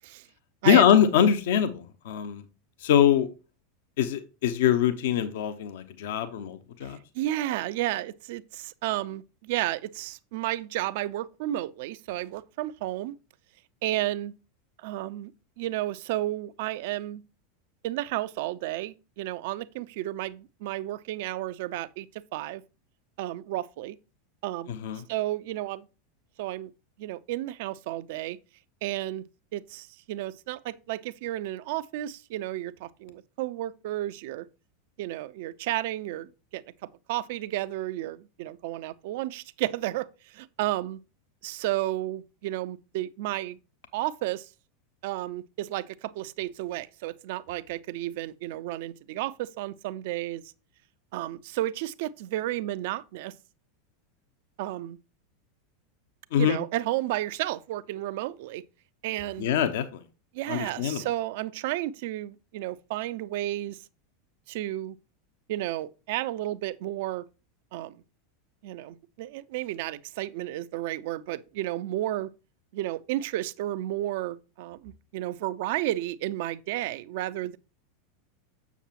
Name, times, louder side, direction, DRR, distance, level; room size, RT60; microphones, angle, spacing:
voice 1, 0.6-2.4 2.8-3.3 4.0-7.0 24.7-25.0 56.3-56.6 59.4-60.0 60.5-61.0, left 9 dB, 60° left, 0.8 m, -23 dB
voice 2, 7.1-13.1 13.8-14.3 14.8-15.3 15.6-17.2 17.8-22.1 22.3-22.6 23.2-24.0 24.4-24.7 25.1-25.9 26.4-26.7 27.0-28.4 28.8-29.2 29.5-34.5 35.0-36.6 37.1-40.1 40.3-41.0 41.4-43.6 43.9-44.5 45.0-50.4 51.1-53.3 54.6-55.0 56.4-58.6 59.0-59.5 60.3-63.8 64.5-65.0 65.5-67.2 67.7-68.0 68.6-72.3 72.7-77.6, right 15 dB, 55° right, 0.5 m, -32 dB
7.2 x 7.1 x 2.9 m
figure-of-eight pair, 85°, 0 cm